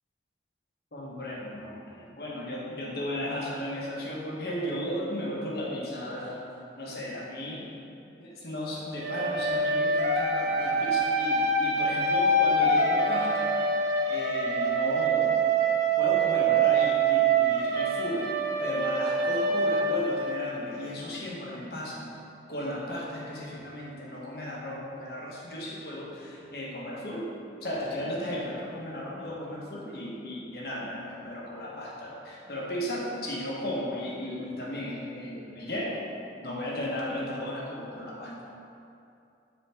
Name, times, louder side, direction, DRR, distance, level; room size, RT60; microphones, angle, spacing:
voice 1, 0.9-6.4 6.8-7.6 8.2-13.5 14.1-15.4 16.0-18.3 18.6-22.1 22.5-27.3 27.6-36.0 36.4-38.4, left 1 dB, 60° left, -4 dB, 1.2 m, -35 dB
sound 1, 9.0-20.8, right 3 dB, 70° right, 0.7 m, -25 dB
7.1 x 4.3 x 3.5 m, 2.6 s
head